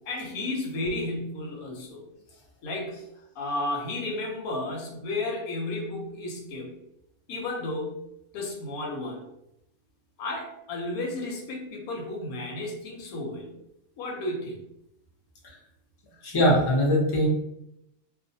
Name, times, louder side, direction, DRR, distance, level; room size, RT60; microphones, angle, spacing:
voice 1, 0.1-2.1 2.6-3.1 3.4-6.7 7.3-8.0 8.3-9.2 10.2-13.5 14.0-14.6, left 2 dB, 85° left, 0 dB, 1.1 m, -33 dB
voice 2, 16.2-17.3, equal, 35° left, -4 dB, 0.4 m, -21 dB
2.5 x 2.1 x 2.6 m, 0.83 s
omnidirectional pair, 1.5 m